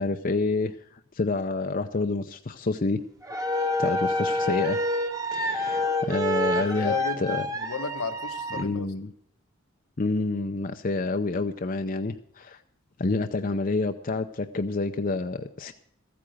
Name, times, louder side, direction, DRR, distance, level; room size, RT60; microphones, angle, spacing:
voice 1, 0.0-3.0 3.8-4.8 5.3-7.4 8.6-9.1 10.0-12.6 13.0-15.7, left 3 dB, 40° left, 7 dB, 0.6 m, -28 dB
sound 1, 3.2-8.6, left 1 dB, 15° right, 1.1 m, -27 dB
voice 2, 6.5-8.9, left 4 dB, 75° left, 7 dB, 1.2 m, -34 dB
14.5 x 8.7 x 6.4 m, 0.67 s
head